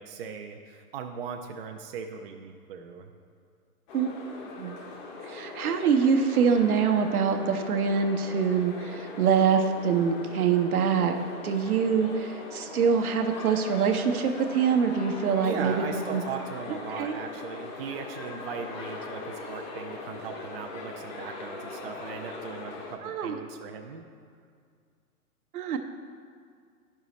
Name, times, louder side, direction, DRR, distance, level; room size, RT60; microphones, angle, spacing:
voice 1, 0.0-3.1 15.4-24.1, right 6 dB, 40° right, 3 dB, 0.4 m, -38 dB
sound 1, 3.9-23.0, left 3 dB, 30° left, 0.7 m, -40 dB
voice 2, 5.2-11.2 11.4-15.8 16.1-16.2 17.0-17.2 23.0-23.4 25.5-25.8, right 6 dB, 70° right, 5 dB, 0.9 m, -24 dB
10.0 x 5.5 x 3.0 m, 2.1 s
hypercardioid pair, 135°, 46 cm